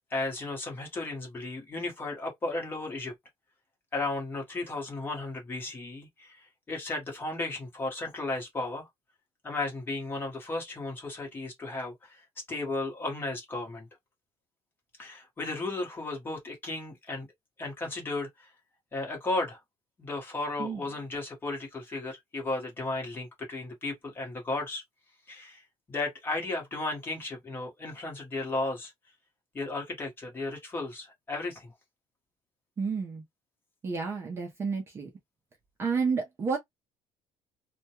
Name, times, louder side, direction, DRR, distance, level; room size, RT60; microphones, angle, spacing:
voice 1, 0.1-3.1 3.9-8.9 9.4-12.2 12.5-13.9 15.0-17.3 17.6-18.5 18.9-19.6 20.0-24.8 25.3-28.9 29.5-31.7, left 2 dB, 20° left, 1.0 m, -34 dB
voice 2, 32.8-33.2 33.8-35.1 35.8-36.6, right 5 dB, 25° right, 0.5 m, -30 dB
2.2 x 2.2 x 2.8 m
cardioid pair, 170°, 11 cm